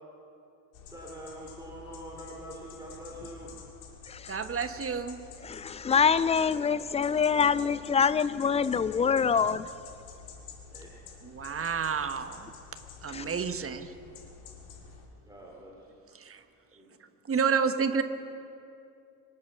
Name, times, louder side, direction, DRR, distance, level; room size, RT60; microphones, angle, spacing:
sound 1, 0.7-15.1, left 5 dB, 65° left, 2.5 m, -49 dB
voice 1, 0.8-3.5 10.7-11.2 15.2-16.2 16.7-17.0, right 1 dB, 10° right, -4 dB, 3.5 m, -45 dB
voice 2, 4.3-5.2 11.2-12.5 13.0-13.9 16.2-16.4 17.3-18.0, right 6 dB, 25° right, 9 dB, 1.3 m, -30 dB
voice 3, 5.4-9.7 13.1-13.3, left 6 dB, 15° left, 17 dB, 0.4 m, -25 dB
25.5 x 9.0 x 6.2 m, 2.6 s
hypercardioid pair, 65°, 48 cm